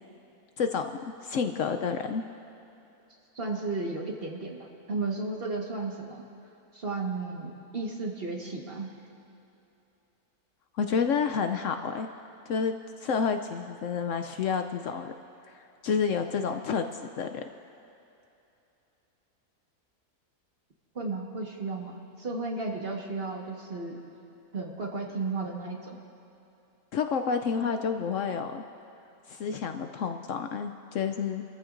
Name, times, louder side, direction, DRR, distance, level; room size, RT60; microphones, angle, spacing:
voice 1, 0.6-0.9 1.2-2.2 10.7-12.1 12.5-15.1 15.5-16.9 17.2-17.4 26.9-28.6 29.3-31.4, left 6 dB, 65° left, 6 dB, 0.9 m, -29 dB
voice 2, 3.3-4.6 4.9-6.2 6.7-8.9 20.9-21.9 22.2-24.0 24.5-26.0 27.6-27.7, right 3 dB, 40° right, -1 dB, 1.6 m, -33 dB
29.0 x 14.5 x 2.6 m, 2.9 s
omnidirectional pair, 1.6 m